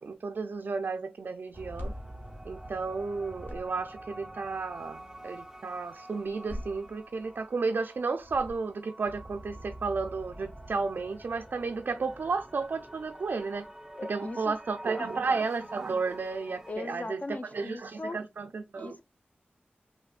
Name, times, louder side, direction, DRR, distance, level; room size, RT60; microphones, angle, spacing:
voice 1, 0.0-1.9 2.5-13.7 14.1-19.0, right 4 dB, 65° right, 0.4 m, -33 dB
sound 1, 1.5-3.0 3.2-4.0 6.2-7.4 8.2-9.0, equal, 60° left, 1.4 m, -43 dB
sound 2, 1.5-16.7, right 1 dB, 10° right, 0.6 m, -47 dB
voice 2, 14.0-14.5 14.9-15.1 16.7-18.2 18.8-19.0, left 2 dB, 45° left, 0.5 m, -39 dB
5.6 x 2.1 x 2.4 m
wide cardioid pair, 70°, 4 cm